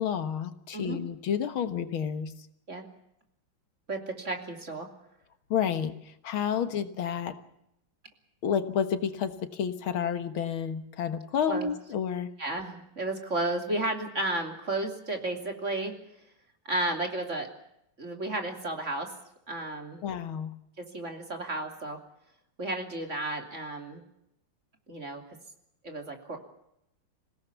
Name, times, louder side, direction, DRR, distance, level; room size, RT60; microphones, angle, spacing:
voice 1, 0.0-2.3 5.5-7.4 8.4-12.3 20.0-20.5, left 8 dB, 85° left, 10 dB, 2.2 m, -30 dB
voice 2, 3.9-4.9 11.5-11.7 12.4-15.9 16.6-17.5 18.0-19.1 19.5-20.0 20.8-22.0 22.6-24.0 24.9-25.2 25.8-26.4, right 2 dB, 35° right, 4 dB, 3.3 m, -33 dB
27.0 x 17.5 x 7.1 m, 0.80 s
omnidirectional pair, 2.2 m